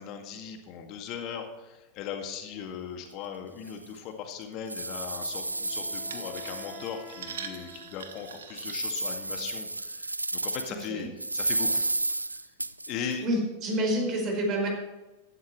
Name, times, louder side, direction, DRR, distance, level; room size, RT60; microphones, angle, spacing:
voice 1, 0.0-11.1 11.3-11.9 12.9-13.3, left 7 dB, 40° left, 4 dB, 2.1 m, -38 dB
sound 1, 3.1-3.2 3.7-3.8 4.3-7.1 7.6-7.7 8.2-10.9 11.2-13.1, right 2 dB, 85° right, 0.3 m, -32 dB
Wind instrument woodwind instrument, 5.0-8.7, left 2 dB, 15° right, 3.9 m, -49 dB
sound 2, 6.1-9.7 10.3-10.6 11.1-11.2, right 6 dB, 65° right, 1.3 m, -44 dB
voice 2, 13.2-14.7, right 1 dB, 35° right, 0 dB, 4.7 m, -28 dB
16.0 x 12.5 x 3.2 m, 1.1 s
figure-of-eight pair, 90°, 0 cm